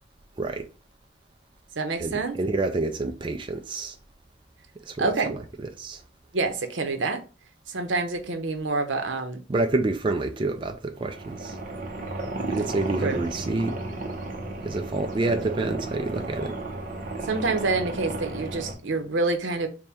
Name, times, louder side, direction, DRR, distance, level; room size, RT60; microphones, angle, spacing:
voice 1, 0.4-0.7 2.0-3.9 4.9-5.4 5.8-6.0 9.5-11.6 12.5-13.8 14.6-16.6, right 2 dB, 25° right, 0.3 m, -28 dB
voice 2, 1.8-2.4 5.0-5.4 6.3-7.2 7.7-9.4 13.0-13.2 17.2-19.7, right 3 dB, 85° right, 0.7 m, -27 dB
sound 1, 11.0-18.7, right 2 dB, 45° right, 0.7 m, -33 dB
4.2 x 2.1 x 3.4 m
head